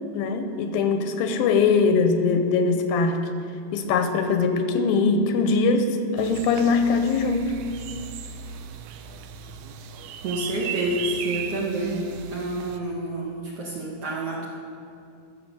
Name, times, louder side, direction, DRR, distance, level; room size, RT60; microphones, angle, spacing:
voice 1, 0.1-3.2 3.7-7.5, left 4 dB, 90° left, 7 dB, 2.6 m, -22 dB
sound 1, 6.2-12.8, right 7 dB, 80° right, 1.8 m, -36 dB
voice 2, 10.2-14.5, right 1 dB, 60° right, -3 dB, 1.7 m, -28 dB
13.5 x 6.6 x 6.9 m, 2.5 s
omnidirectional pair, 4.1 m